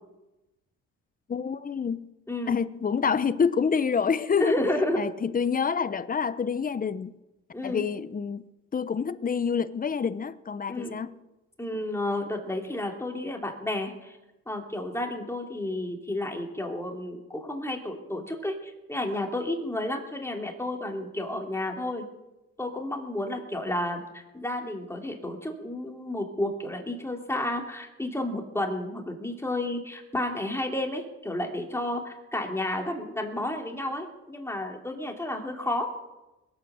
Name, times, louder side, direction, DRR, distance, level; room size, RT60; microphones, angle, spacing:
voice 1, 1.3-2.1 2.5-4.6 5.0-7.1 7.6-11.1, left 6 dB, 30° left, 0.8 m, -27 dB
voice 2, 2.3-2.6 4.4-5.0 7.5-7.8 10.7-11.0 11.6-14.2 14.5-22.0 22.6-35.9, left 1 dB, 10° left, 2.9 m, -31 dB
21.5 x 8.8 x 6.9 m
cardioid pair, 90°, 30 cm